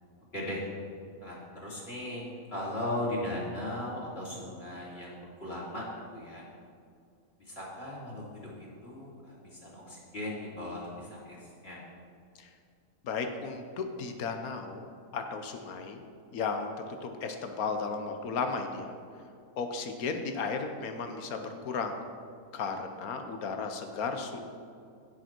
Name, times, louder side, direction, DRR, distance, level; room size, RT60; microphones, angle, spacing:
voice 1, 0.3-0.6 1.2-2.3 2.5-5.9 6.1-6.4 7.4-11.8, left 1 dB, 45° left, -4 dB, 3.0 m, -38 dB
voice 2, 13.0-16.0 16.3-18.9 19.6-22.0 22.5-24.4, left 4 dB, 90° left, 6 dB, 1.4 m, -35 dB
16.0 x 6.5 x 4.6 m, 2.4 s
omnidirectional pair, 1.5 m